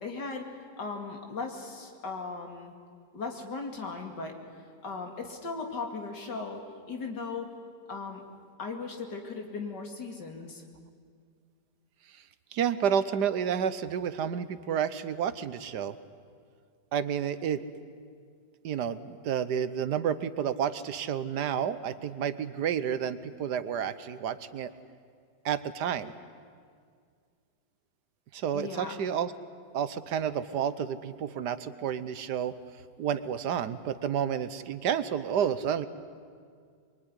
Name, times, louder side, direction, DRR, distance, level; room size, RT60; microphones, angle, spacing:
voice 1, 0.0-0.5 0.8-2.7 3.1-4.4 4.8-7.5 7.9-8.2 8.6-10.6 28.5-28.9, left 4 dB, 70° left, 3 dB, 3.2 m, -37 dB
voice 2, 12.5-16.0 16.9-17.6 18.6-24.7 25.4-26.1 28.3-29.3 29.7-32.5 33.0-35.9, right 8 dB, 70° right, 13 dB, 1.4 m, -30 dB
24.0 x 23.0 x 9.9 m, 2.1 s
omnidirectional pair, 1.9 m